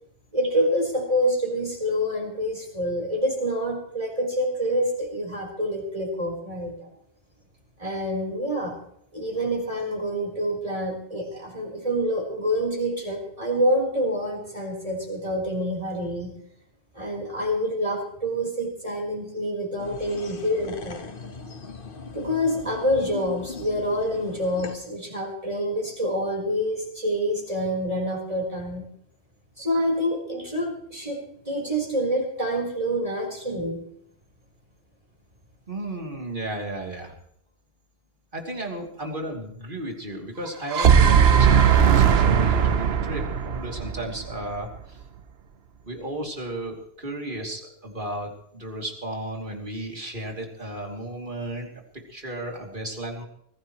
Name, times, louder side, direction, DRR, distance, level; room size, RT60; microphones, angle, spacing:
voice 1, 0.3-6.9 7.8-8.7 9.1-16.3 16.9-21.0 22.1-28.8 29.6-31.2 31.5-33.8, equal, 35° right, -1 dB, 4.5 m, -27 dB
sound 1, 19.8-24.8, left 4 dB, 60° left, 1.4 m, -39 dB
voice 2, 35.7-37.1 38.3-45.0 45.8-51.7 52.1-53.2, right 1 dB, 55° right, 1 dB, 3.0 m, -34 dB
sound 2, 40.5-44.7, right 7 dB, 80° right, 1.1 m, -18 dB
24.0 x 15.5 x 3.1 m, 0.70 s
omnidirectional pair, 1.0 m